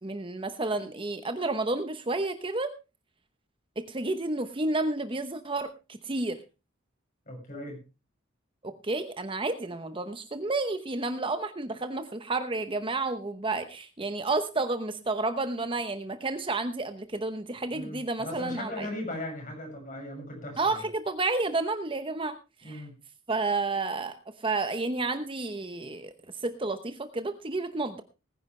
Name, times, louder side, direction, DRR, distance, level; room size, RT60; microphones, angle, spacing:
voice 1, 0.0-2.7 3.8-6.4 8.6-18.9 20.6-22.4 22.6-22.9 23.3-26.1 26.4-28.0, right 3 dB, 25° right, 9 dB, 0.9 m, -31 dB
voice 2, 7.3-7.8 17.7-20.8 22.6-22.9, left 1 dB, 40° left, 1 dB, 6.6 m, -38 dB
19.5 x 10.5 x 3.3 m, 0.29 s
head